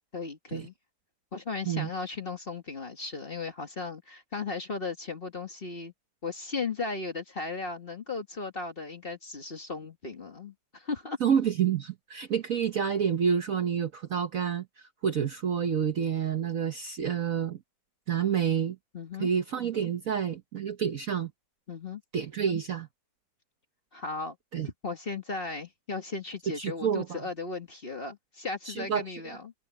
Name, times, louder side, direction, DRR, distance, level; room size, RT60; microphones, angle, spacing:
voice 1, 0.1-0.7 1.3-5.9 6.2-11.2 18.9-19.3 21.7-22.0 23.9-24.4 24.6-29.5, left 4 dB, 30° left, 1.6 m, -36 dB
voice 2, 11.2-17.6 18.1-18.8 19.2-21.3 22.1-22.9 24.5-24.7 26.6-27.2 28.7-29.4, right 8 dB, 55° right, 1.1 m, -29 dB
omnidirectional pair, 2.1 m